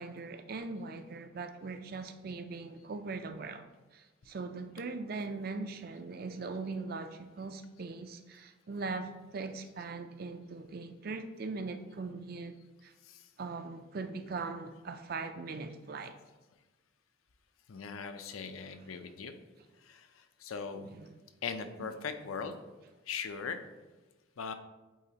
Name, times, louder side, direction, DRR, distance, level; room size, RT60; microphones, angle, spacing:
voice 1, 0.0-3.7 3.9-12.6 12.8-12.9 13.4-16.1 18.9-19.0 20.9-21.1 21.8-21.9, right 4 dB, 45° right, 0.4 m, -40 dB
voice 2, 17.7-19.3 19.8-20.9 21.4-22.6 23.1-23.6 24.4-24.5, left 5 dB, 90° left, 0.5 m, -40 dB
8.4 x 4.0 x 2.9 m
head